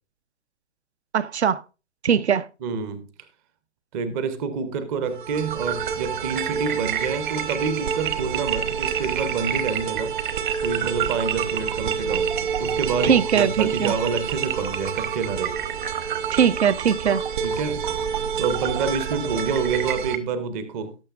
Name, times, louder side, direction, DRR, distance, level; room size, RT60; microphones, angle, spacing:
voice 1, 1.1-1.6 2.0-2.5 13.0-13.9 16.3-17.2, right 7 dB, 65° right, 0.7 m, -20 dB
voice 2, 2.6-3.1 3.9-10.1 10.6-12.3 12.6-15.6 17.4-17.9 18.4-21.0, right 5 dB, 15° right, 0.6 m, -28 dB
sound 1, 5.1-20.2, right 7 dB, 45° right, 1.1 m, -27 dB
18.0 x 6.3 x 2.4 m
figure-of-eight pair, 140°, 36 cm